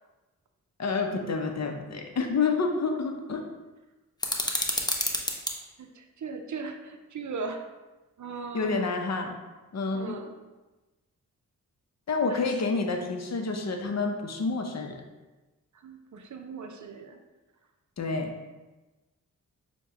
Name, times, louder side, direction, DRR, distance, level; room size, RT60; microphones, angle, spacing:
voice 1, 0.8-3.4 8.5-9.4 9.7-10.2 12.1-15.0 18.0-18.3, left 4 dB, 50° left, 4 dB, 0.7 m, -28 dB
sound 1, 4.2-5.6, left 1 dB, 10° left, 0.7 m, -29 dB
voice 2, 5.8-7.6 8.2-8.9 9.9-10.4 12.3-12.4 15.7-17.2, right 4 dB, 55° right, 5 dB, 0.6 m, -38 dB
6.7 x 2.3 x 2.9 m, 1.2 s
cardioid pair, 45°, 35 cm